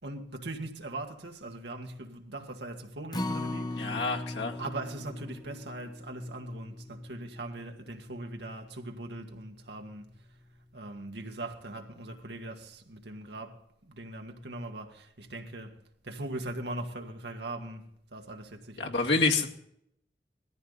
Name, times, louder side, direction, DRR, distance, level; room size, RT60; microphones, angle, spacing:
voice 1, 0.0-4.3 4.6-10.1 10.7-15.8 16.0-17.8 18.1-19.4, right 2 dB, 75° right, 1.8 m, -40 dB
Acoustic guitar, 3.1-9.4 9.8-9.9 10.3-10.4, left 1 dB, 25° left, 0.9 m, -39 dB
voice 2, 3.8-4.6 18.8-19.5, left 3 dB, 90° left, 2.1 m, -27 dB
19.0 x 14.0 x 4.1 m
head